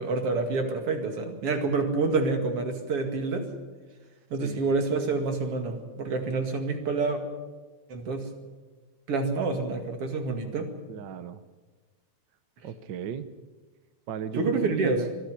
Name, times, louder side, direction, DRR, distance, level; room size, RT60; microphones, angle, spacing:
voice 1, 0.0-3.4 4.3-7.2 7.9-8.2 9.1-10.7 14.3-15.0, right 3 dB, 55° right, 6 dB, 3.0 m, -27 dB
voice 2, 4.4-4.7 10.9-11.4 12.6-13.3 14.1-15.1, right 8 dB, 75° right, 12 dB, 1.0 m, -35 dB
24.5 x 11.5 x 9.9 m, 1.3 s
omnidirectional pair, 3.3 m